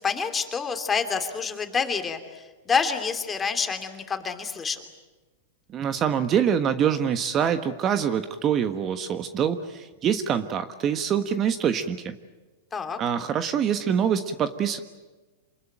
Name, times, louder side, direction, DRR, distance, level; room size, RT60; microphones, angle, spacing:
voice 1, 0.0-4.8 12.7-13.0, left 5 dB, 20° left, 7 dB, 2.9 m, -27 dB
voice 2, 5.7-12.1 13.0-14.8, right 8 dB, 30° right, 10 dB, 1.3 m, -25 dB
27.5 x 20.5 x 9.0 m, 1.2 s
hypercardioid pair, 125°, 0 cm